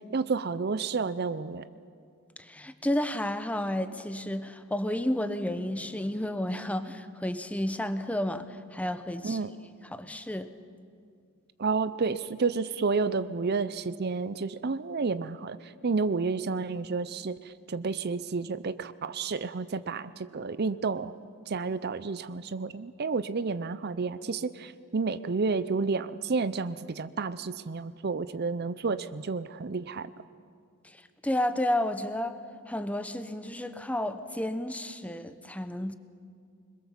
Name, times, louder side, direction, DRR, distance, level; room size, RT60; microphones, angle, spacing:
voice 1, 0.1-1.7 9.2-9.5 11.6-21.2 21.5-30.1, right 4 dB, 50° right, 14 dB, 0.5 m, -30 dB
voice 2, 2.4-9.4 9.9-10.5 31.2-32.4 32.7-35.9, left 1 dB, 5° left, 10 dB, 0.8 m, -31 dB
25.5 x 21.5 x 7.3 m, 2.3 s
head